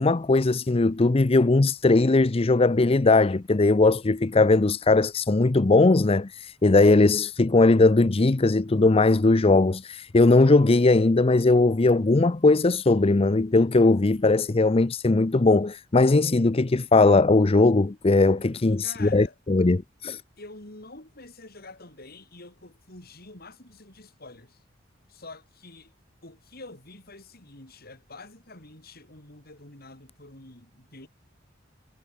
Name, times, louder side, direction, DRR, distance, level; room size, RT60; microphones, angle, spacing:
voice 1, 0.0-20.2, left 3 dB, 30° left, 0.6 m, -19 dB
voice 2, 18.8-19.3 20.4-24.6 25.1-25.9 26.2-31.1, left 2 dB, 55° left, 6.2 m, -46 dB
head